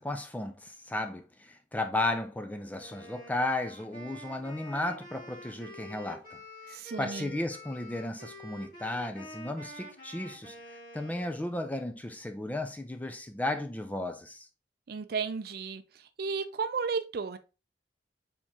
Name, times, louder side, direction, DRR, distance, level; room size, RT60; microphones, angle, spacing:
voice 1, 0.0-6.4 6.7-10.5 10.9-14.5, left 2 dB, 10° left, 0.4 m, -34 dB
Wind instrument woodwind instrument, 2.7-11.5, equal, 50° left, 2.2 m, -47 dB
voice 2, 6.7-7.3 14.9-15.8 16.2-17.4, right 5 dB, 55° right, 0.4 m, -33 dB
4.5 x 3.5 x 2.9 m
head